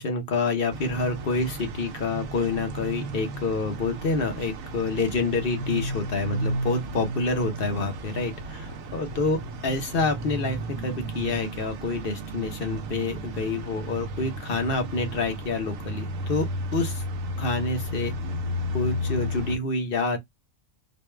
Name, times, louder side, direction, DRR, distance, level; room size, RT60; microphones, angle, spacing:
voice 1, 0.0-17.0 17.4-18.1 18.7-20.2, left 3 dB, 45° left, 1.2 m, -28 dB
sound 1, 0.7-19.6, right 1 dB, 90° right, 1.1 m, -33 dB
4.1 x 2.3 x 3.3 m
omnidirectional pair, 1.3 m